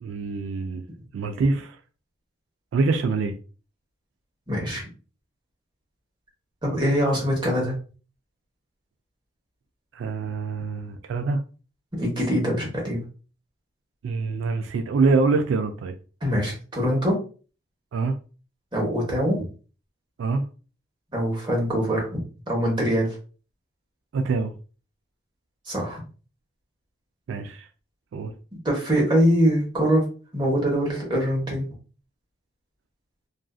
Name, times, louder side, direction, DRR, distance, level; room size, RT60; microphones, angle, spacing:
voice 1, 0.0-0.8 1.1-1.8 2.7-3.4 9.9-11.4 14.0-15.9 17.9-18.2 20.2-20.4 24.1-24.5 27.3-27.7 28.1-28.3, right 4 dB, 80° right, 0.3 m, -25 dB
voice 2, 4.5-4.8 6.6-7.7 12.0-13.0 16.2-17.2 18.7-19.5 21.1-23.1 25.7-26.0 28.6-30.1 30.3-31.7, equal, 25° right, 1.0 m, -23 dB
2.5 x 2.3 x 2.3 m
head